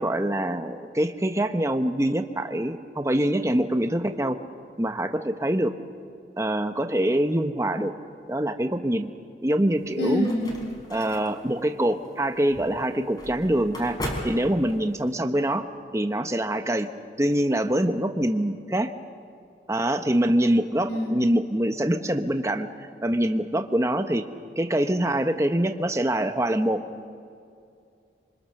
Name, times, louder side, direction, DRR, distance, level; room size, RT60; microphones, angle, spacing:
voice 1, 0.0-4.4 4.8-5.7 6.4-7.9 8.3-9.1 9.4-10.3 10.9-14.0 14.2-15.7 15.9-16.9 17.2-18.9 19.7-24.3 24.6-26.8, right 1 dB, 15° right, 7 dB, 1.0 m, -24 dB
sound 1, 9.8-15.1, equal, 25° left, 4.3 m, -38 dB
voice 2, 10.0-10.7 20.9-21.4, left 1 dB, 90° left, 1 dB, 7.1 m, -27 dB
27.0 x 25.0 x 6.6 m, 2.4 s
head